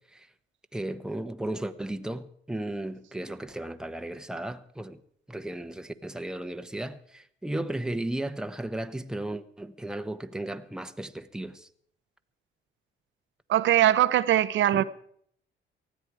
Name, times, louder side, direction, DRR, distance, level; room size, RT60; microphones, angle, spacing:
voice 1, 0.7-5.0 5.3-11.7 14.7-14.8, right 1 dB, 5° right, 1.0 m, -35 dB
voice 2, 13.5-14.8, right 12 dB, 70° right, 0.7 m, -21 dB
19.0 x 14.5 x 4.8 m
cardioid pair, 90°, 20 cm